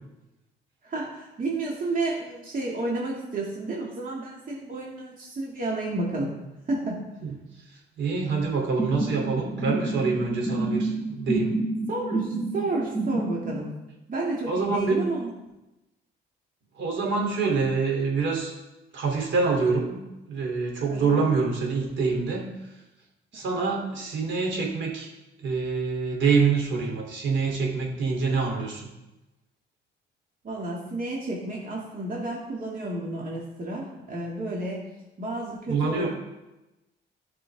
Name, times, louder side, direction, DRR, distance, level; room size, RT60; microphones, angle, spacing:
voice 1, 0.8-6.4 6.7-7.0 11.9-13.7 14.1-15.3 20.9-21.2 23.3-23.5 30.4-34.9 35.2-36.1, right 2 dB, 45° right, -3 dB, 2.2 m, -31 dB
voice 2, 8.0-11.5 14.5-15.0 16.8-18.5 18.9-20.0 20.3-22.5 23.3-25.1 25.4-28.9 35.7-36.1, right 4 dB, 70° right, 0 dB, 3.1 m, -26 dB
sound 1, 8.8-13.6, right 2 dB, 15° left, 1.5 m, -28 dB
14.0 x 6.0 x 3.5 m, 1.0 s
cardioid pair, 90°, 20 cm